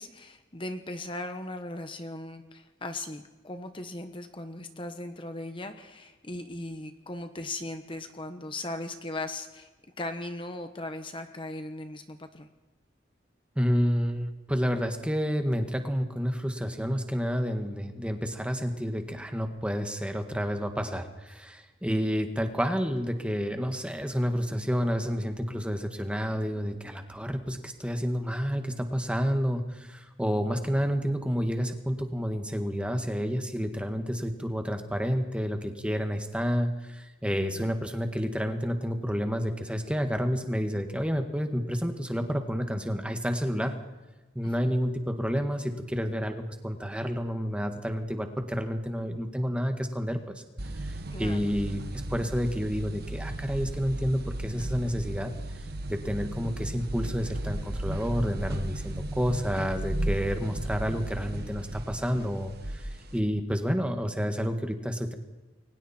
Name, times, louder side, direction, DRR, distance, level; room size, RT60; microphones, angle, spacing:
voice 1, 0.0-9.7 10.0-12.5 37.5-37.7 44.4-44.7 51.1-51.5, left 2 dB, 25° left, 7 dB, 1.2 m, -38 dB
voice 2, 13.5-43.8 44.3-50.4 50.7-65.1, equal, 5° right, 6 dB, 1.8 m, -30 dB
sound 1, 50.6-63.2, right 1 dB, 55° right, 1.7 m, -35 dB
29.0 x 23.0 x 4.5 m, 1.2 s
head